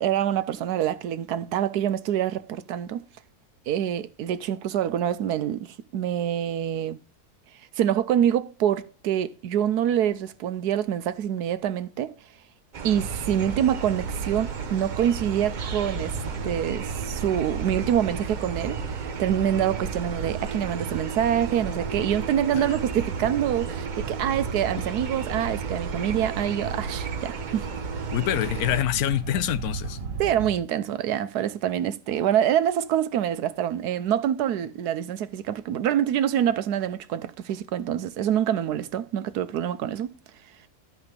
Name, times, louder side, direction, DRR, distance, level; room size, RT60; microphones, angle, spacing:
voice 1, 0.0-3.0 3.7-7.0 7.8-12.2 12.8-27.7 30.2-40.1, right 10 dB, 85° right, 1.3 m, -26 dB
sound 1, 12.7-28.8, right 6 dB, 40° right, 0.7 m, -35 dB
sound 2, 12.9-30.5, right 5 dB, 60° right, 1.8 m, -35 dB
voice 2, 28.1-30.0, left 12 dB, 75° left, 1.2 m, -26 dB
12.5 x 4.9 x 6.6 m
omnidirectional pair, 1.7 m